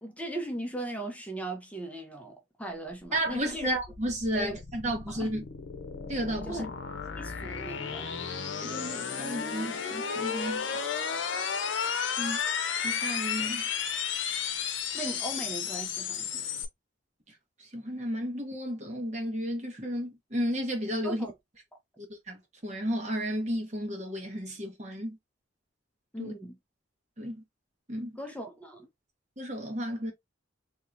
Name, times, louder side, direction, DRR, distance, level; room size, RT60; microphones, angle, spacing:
voice 1, 0.0-3.7 4.3-4.6 5.1-5.3 6.4-6.7 7.1-8.1 14.9-16.4 21.0-21.3 26.1-26.6 28.2-28.9, right 1 dB, 5° left, 0.7 m, -38 dB
sound 1, 2.9-16.7, left 7 dB, 80° left, 0.7 m, -33 dB
voice 2, 3.1-5.4 6.1-6.7 8.6-10.7 12.2-12.4 12.8-13.6 17.6-21.2 22.3-25.2 26.2-26.3 27.2-27.4 27.9-28.1 29.4-30.1, equal, 40° right, 1.3 m, -33 dB
3.6 x 2.9 x 2.7 m
head